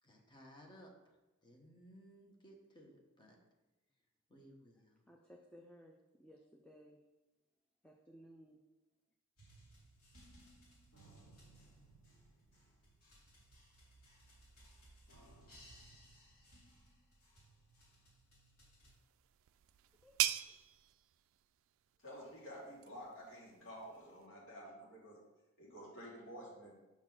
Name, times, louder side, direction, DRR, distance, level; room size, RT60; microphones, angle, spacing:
voice 1, 0.0-3.4 4.3-5.0, equal, 20° left, 0 dB, 1.1 m, -60 dB
voice 2, 5.1-7.0 7.8-8.6 20.0-20.2, equal, 5° left, 1 dB, 0.5 m, -59 dB
sound 1, 9.4-18.9, right 1 dB, 80° left, 2.5 m, -62 dB
sound 2, 18.9-24.3, right 14 dB, 65° right, 0.3 m, -42 dB
voice 3, 22.0-25.2 25.6-26.7, equal, 60° left, -4 dB, 2.4 m, -51 dB
5.8 x 4.4 x 5.9 m, 1.1 s
head